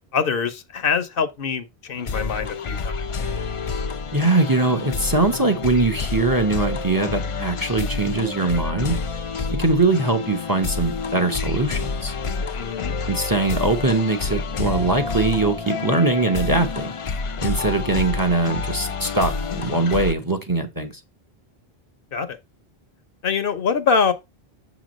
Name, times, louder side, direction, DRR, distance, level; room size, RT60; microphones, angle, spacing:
voice 1, 0.1-2.9 12.5-12.9 22.1-22.4 23.2-24.1, left 6 dB, 65° left, 0.9 m, -24 dB
sound 1, 1.9-20.1, left 4 dB, 45° left, 0.4 m, -28 dB
voice 2, 4.1-9.0 9.6-12.1 13.1-16.9 17.4-20.9, right 2 dB, 25° right, 0.7 m, -21 dB
6.8 x 3.0 x 5.1 m
omnidirectional pair, 1.0 m